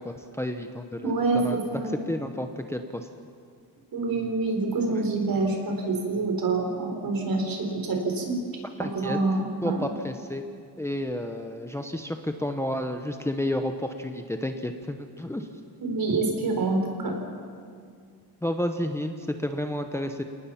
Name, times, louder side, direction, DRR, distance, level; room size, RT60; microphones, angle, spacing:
voice 1, 0.0-3.1 8.8-9.2 9.6-10.4 10.8-15.5 18.4-20.2, left 1 dB, 5° left, 6 dB, 0.9 m, -31 dB
voice 2, 1.0-1.9 3.9-8.4 8.8-9.8 15.8-17.2, right 3 dB, 60° right, 3 dB, 4.6 m, -26 dB
28.5 x 19.0 x 5.9 m, 2.2 s
cardioid pair, 125°, 40 cm